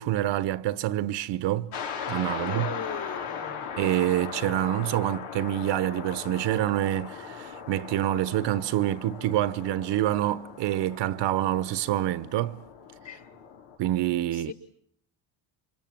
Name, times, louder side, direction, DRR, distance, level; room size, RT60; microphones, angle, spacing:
voice 1, 0.0-1.7 2.1-2.7 3.8-12.6 13.1-13.2 13.8-14.5, right 13 dB, 65° right, 1.1 m, -27 dB
sound 1, 1.7-13.8, left 7 dB, 85° left, 5.0 m, -39 dB
voice 2, 2.3-3.6 13.0-13.3 14.3-14.5, left 6 dB, 40° left, 6.7 m, -38 dB
28.5 x 26.0 x 7.6 m
cardioid pair, 115°, 46 cm